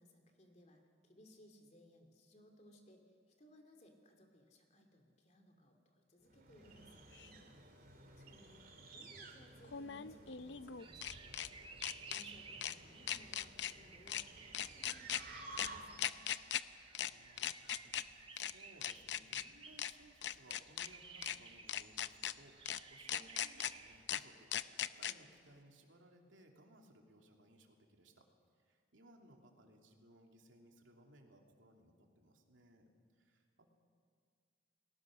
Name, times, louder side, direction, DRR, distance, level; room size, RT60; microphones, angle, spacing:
voice 1, 0.0-7.4 8.2-8.7 8.9-11.5 12.1-16.3, equal, 35° left, 3 dB, 2.9 m, -64 dB
sound 1, 6.3-16.1, right 2 dB, 50° right, 2.5 m, -55 dB
sound 2, 7.2-7.3 9.6-11.5 11.8-12.2 12.6-12.8 13.1-13.7 14.1-14.2 14.5-15.2 15.6-15.7 16.0-16.6 16.9-17.1 17.4-18.0 18.4-18.5 18.8-19.4 19.8-19.9 20.2-20.9 21.2-21.4 21.7-22.3 22.7-22.8 23.1-23.7 24.1-24.2 24.5-25.1, left 10 dB, 65° left, 0.6 m, -39 dB
voice 2, 8.1-8.5 17.1-28.3 28.6-33.9, right 1 dB, 90° right, 2 dB, 2.9 m, -64 dB
sound 3, 10.8-24.0, right 4 dB, 30° right, 1.2 m, -57 dB
29.0 x 19.5 x 6.4 m, 2.1 s
head